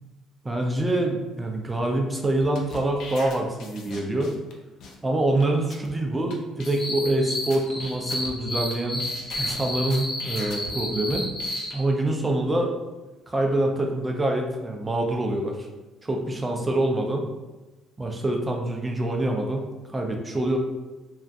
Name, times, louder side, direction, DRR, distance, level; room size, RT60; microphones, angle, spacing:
voice 1, 0.4-4.3 5.0-9.0 9.3-11.2 11.7-12.7 13.3-15.6 16.0-17.3 18.0-19.7 19.9-20.6, right 1 dB, 20° right, 2 dB, 0.5 m, -25 dB
sound 1, 2.4-4.5 4.8-5.0 5.4-5.5 5.7-5.9 6.3-6.4 6.6-7.1 7.5-8.7 9.0-10.7 11.1-11.7, left 3 dB, 65° left, 0.4 m, -41 dB
sound 2, 6.6-11.8, left 1 dB, 35° left, 0.9 m, -32 dB
2.3 x 2.1 x 2.6 m, 1.1 s
supercardioid pair, 70°, 0 cm